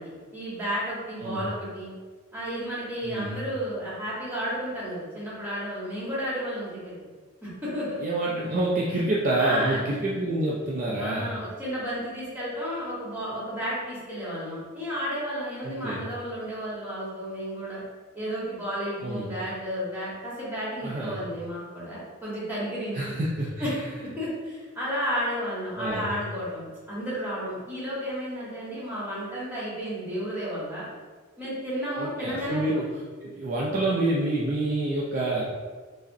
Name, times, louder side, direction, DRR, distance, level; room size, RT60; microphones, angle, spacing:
voice 1, 0.0-1.9 2.3-6.9 7.4-8.0 9.4-9.8 11.0-17.8 18.1-23.2 23.6-23.9 24.2-30.9 31.4-32.7, equal, 10° right, -8 dB, 1.1 m, -32 dB
voice 2, 3.0-3.4 8.0-11.3 15.6-16.0 19.0-19.3 20.8-21.2 22.9-23.7 25.8-26.2 32.0-35.6, right 2 dB, 40° right, -5 dB, 0.4 m, -27 dB
4.8 x 2.0 x 2.6 m, 1.4 s
head